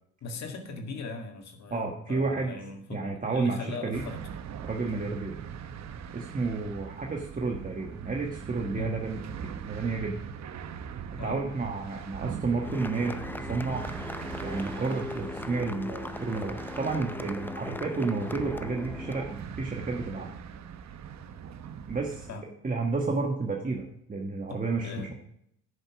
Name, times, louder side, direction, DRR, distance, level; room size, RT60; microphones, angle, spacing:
voice 1, 0.2-4.3 8.7-9.0 11.2-11.4 22.3-22.5 24.5-25.1, left 3 dB, 60° left, 4 dB, 2.0 m, -39 dB
voice 2, 1.7-2.6 2.9-4.0 4.6-5.4 6.1-10.3 11.2-13.9 14.4-20.3 21.9-22.3 22.6-25.1, right 3 dB, 25° right, 0 dB, 1.4 m, -31 dB
sound 1, 3.9-22.3, right 7 dB, 65° right, 0.9 m, -41 dB
sound 2, 12.6-19.4, left 2 dB, 5° left, 0.5 m, -39 dB
10.0 x 6.8 x 6.0 m, 0.73 s
cardioid pair, 90°, 30 cm